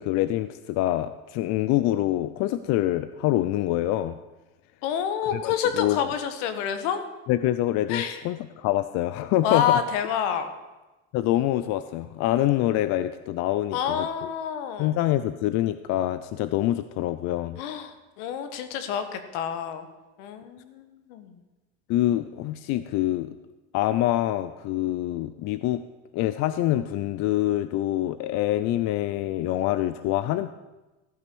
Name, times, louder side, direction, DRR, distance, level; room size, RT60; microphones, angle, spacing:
voice 1, 0.0-4.2 5.3-5.4 5.8-6.1 7.3-9.8 11.1-14.1 14.8-17.6 21.9-23.4 23.7-25.8 26.1-30.5, left 14 dB, 55° left, 12 dB, 0.5 m, -25 dB
voice 2, 4.8-7.1 7.9-8.2 9.4-10.5 13.7-14.9 17.6-19.9 20.2-21.4, left 8 dB, 80° left, 9 dB, 1.4 m, -28 dB
14.5 x 5.8 x 6.1 m, 1.1 s
cardioid pair, 135°, 33 cm